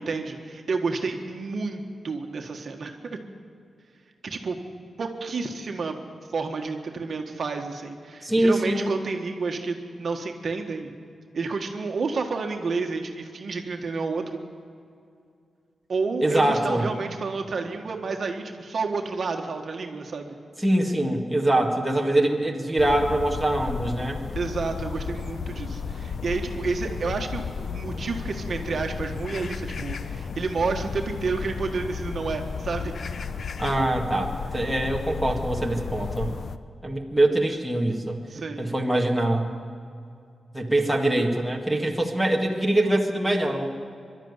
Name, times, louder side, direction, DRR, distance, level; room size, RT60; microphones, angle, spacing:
voice 1, 0.0-3.2 4.2-4.6 5.0-6.0 6.3-10.9 11.3-14.4 15.9-20.3 24.3-32.9 38.3-38.7, right 4 dB, 50° right, 3 dB, 1.6 m, -30 dB
voice 2, 8.2-8.9 16.2-16.9 20.6-24.2 33.6-36.3 36.8-38.2 38.6-39.5 40.5-43.7, right 1 dB, ahead, 0 dB, 1.9 m, -23 dB
sound 1, 22.8-36.6, left 5 dB, 50° left, 0.7 m, -33 dB
24.0 x 12.5 x 9.7 m, 2.4 s
wide cardioid pair, 165°, 0 cm